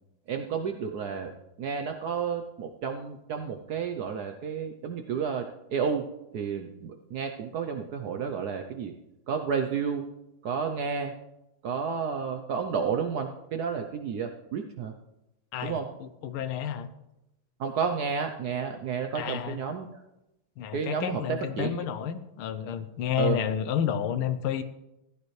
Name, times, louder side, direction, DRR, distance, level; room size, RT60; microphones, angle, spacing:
voice 1, 0.3-1.3 1.6-6.1 6.3-8.9 9.3-10.1 10.4-11.1 11.6-14.9 15.6-15.9 17.6-20.0 20.7-21.8 23.2-23.4, right 6 dB, 70° right, 5 dB, 0.9 m, -31 dB
voice 2, 15.5-16.9 19.1-19.6 20.6-24.6, left 9 dB, 80° left, 11 dB, 1.6 m, -30 dB
15.0 x 11.5 x 3.2 m, 0.91 s
omnidirectional pair, 2.3 m